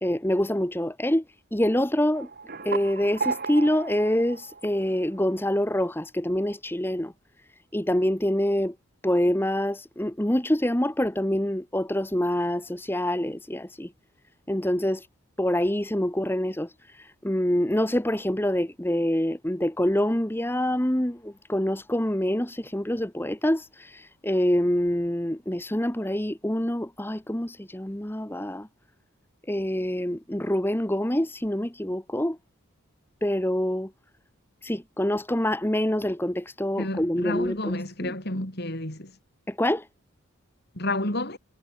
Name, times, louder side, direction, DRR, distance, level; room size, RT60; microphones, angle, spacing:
voice 1, 0.0-1.2 1.5-2.3 2.6-7.1 7.7-8.7 9.0-13.9 14.5-15.1 15.4-28.7 29.5-32.4 33.2-33.9 34.6-38.1 39.5-39.9, left 1 dB, 10° left, 1.1 m, -26 dB
sound 1, 2.1-5.5, right 4 dB, 45° right, 1.6 m, -34 dB
voice 2, 36.8-39.1 40.8-41.4, left 1 dB, 45° left, 5.3 m, -30 dB
head